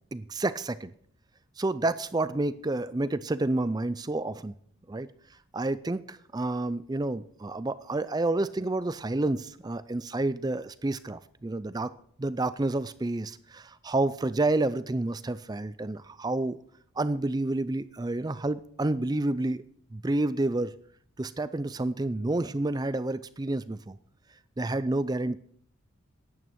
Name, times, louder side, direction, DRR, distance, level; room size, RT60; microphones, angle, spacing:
voice 1, 0.1-0.9 1.6-4.5 4.9-5.1 5.5-11.9 12.2-16.6 17.0-19.6 19.9-20.7 21.2-24.0 24.6-25.4, right 2 dB, 20° right, 0.4 m, -29 dB
11.0 x 9.0 x 8.0 m
head